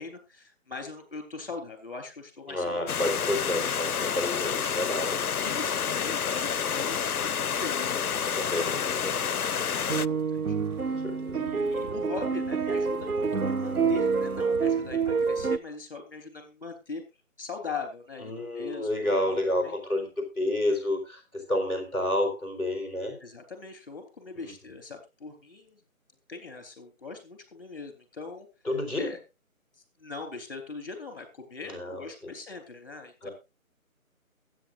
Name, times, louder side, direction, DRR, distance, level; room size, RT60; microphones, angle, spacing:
voice 1, 0.0-3.3 3.6-3.7 5.4-11.0 11.4-17.0 17.4-19.7 23.2-25.8 26.3-28.5 29.0-29.2 29.7-33.3, left 4 dB, 40° left, 7 dB, 3.5 m, -41 dB
voice 2, 2.5-5.2 8.3-9.3 11.0-11.4 18.2-23.2 24.4-24.5 28.6-29.2 31.6-32.3 33.2-33.3, left 1 dB, ahead, -6 dB, 3.1 m, -30 dB
Stream, 2.9-10.1, left 7 dB, 85° left, 0.5 m, -29 dB
sound 1, 9.8-15.6, right 5 dB, 85° right, 0.9 m, -27 dB
22.0 x 9.0 x 2.5 m, 0.27 s
figure-of-eight pair, 155°, 43 cm